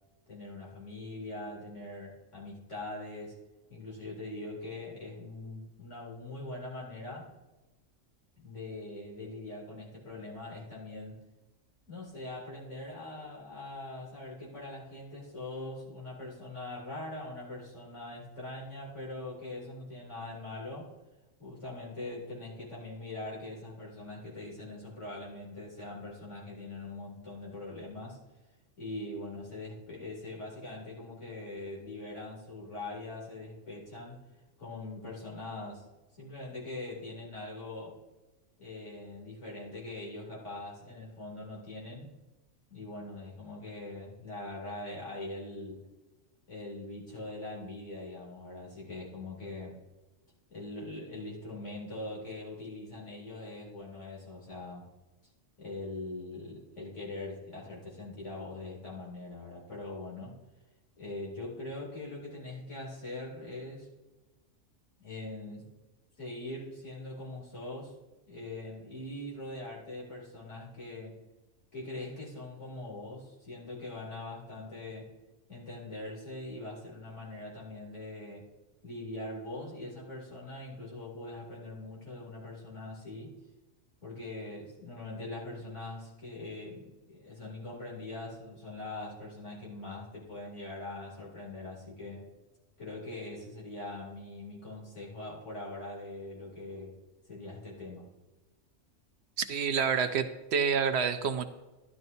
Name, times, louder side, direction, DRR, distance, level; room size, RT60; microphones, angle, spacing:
voice 1, 0.3-3.4 3.7-7.3 8.4-11.2 11.9-20.9 21.4-28.2 28.8-34.2 34.6-35.9 36.2-38.0 38.6-42.1 42.7-45.8 46.5-49.8 50.5-54.9 55.6-60.3 61.0-63.9 65.0-65.7 66.2-67.9 68.3-71.2 71.7-75.1 75.5-78.5 78.8-83.4 84.0-92.3 92.8-96.9 97.3-98.1, left 2 dB, 75° left, -4 dB, 3.3 m, -42 dB
voice 2, 99.4-101.4, right 6 dB, 65° right, 9 dB, 0.8 m, -28 dB
12.0 x 11.0 x 2.7 m, 1.1 s
omnidirectional pair, 1.3 m